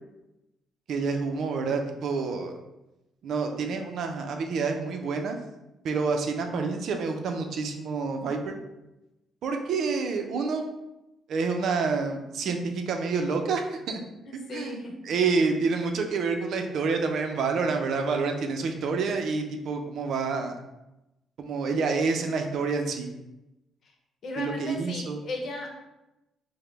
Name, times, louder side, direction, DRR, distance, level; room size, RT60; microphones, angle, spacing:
voice 1, 0.9-2.5 3.2-5.4 5.8-8.6 9.4-10.7 11.3-14.0 14.5-20.6 21.4-23.1 24.4-25.2, right 4 dB, 70° right, 4 dB, 0.5 m, -28 dB
voice 2, 14.2-14.9 23.8-23.9 24.2-25.7, left 2 dB, 60° left, 1 dB, 0.8 m, -36 dB
4.8 x 2.1 x 3.3 m, 0.96 s
cardioid pair, 90°, 0 cm